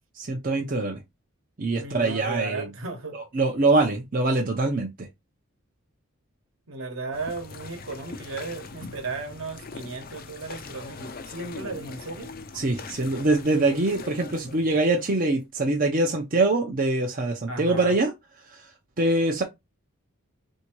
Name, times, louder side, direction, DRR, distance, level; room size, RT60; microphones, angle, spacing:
voice 1, 0.2-1.0 1.6-2.7 3.1-5.1 12.5-18.1 18.5-18.7 19.0-19.4, right 2 dB, 40° right, 0.6 m, -24 dB
voice 2, 1.8-3.2 6.7-12.3 17.5-18.0, right 3 dB, 65° right, 1.2 m, -35 dB
sound 1, 7.1-15.4, left 4 dB, 45° left, 0.5 m, -41 dB
3.6 x 2.7 x 4.5 m
head